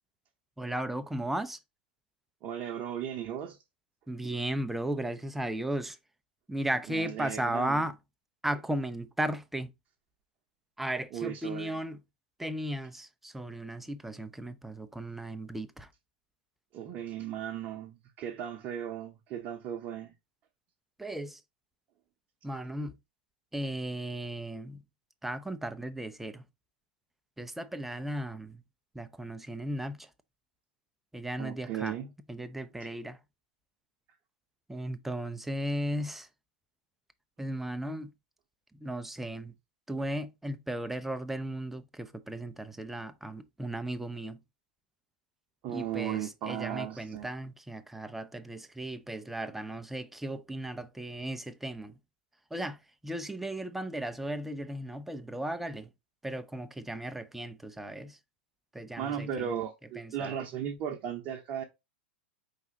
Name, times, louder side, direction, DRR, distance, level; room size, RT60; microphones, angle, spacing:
voice 1, 0.6-1.6 4.1-6.0 6.5-8.0 8.4-9.7 10.8-12.0 12.4-15.9 21.0-21.4 22.4-23.0 23.5-24.8 25.2-26.5 27.4-28.6 28.9-30.1 31.1-32.0 32.3-33.2 34.7-36.3 37.4-38.1 38.7-39.5 39.9-44.4 45.7-52.0 52.5-55.9 56.2-58.2 58.7-59.5 60.0-60.4, right 1 dB, 5° right, 0.4 m, -36 dB
voice 2, 2.4-3.6 6.9-7.8 11.1-11.8 16.7-20.1 31.4-32.1 45.6-47.3 59.0-61.6, right 9 dB, 35° right, 0.8 m, -36 dB
4.9 x 3.4 x 2.8 m
figure-of-eight pair, 95°, 6 cm